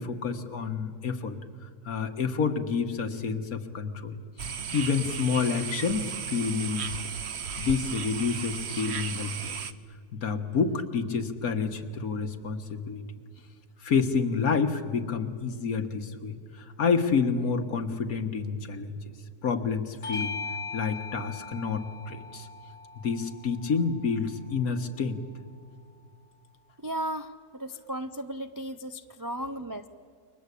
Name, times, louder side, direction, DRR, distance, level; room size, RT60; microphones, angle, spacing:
voice 1, 0.0-1.4 1.6-4.2 4.7-6.9 7.6-9.5 10.1-13.0 13.8-19.0 19.4-20.3 20.7-22.5 23.0-25.2, left 5 dB, 65° left, 7 dB, 1.9 m, -29 dB
sound 1, 4.4-9.7, right 7 dB, 50° right, 1.0 m, -35 dB
Bell / Doorbell, 20.0-24.9, left 4 dB, 40° left, 1.2 m, -40 dB
voice 2, 26.8-29.9, right 1 dB, 25° right, 8 dB, 0.4 m, -35 dB
29.5 x 23.5 x 8.4 m, 2.1 s
omnidirectional pair, 1.7 m